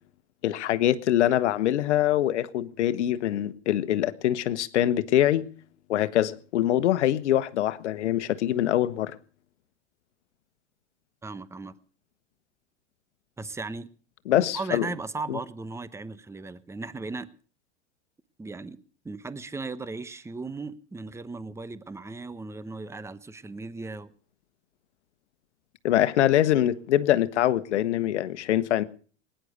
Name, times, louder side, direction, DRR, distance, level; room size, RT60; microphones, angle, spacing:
voice 1, 0.4-5.5 5.9-9.1 14.3-14.9 15.3-15.4 25.8-28.8, left 12 dB, 75° left, 1.2 m, -24 dB
voice 2, 11.2-11.7 13.4-13.9 14.3-17.3 18.4-18.8 19.0-24.1, right 3 dB, 10° right, 0.9 m, -37 dB
19.0 x 10.5 x 6.6 m
hypercardioid pair, 100°, 35 cm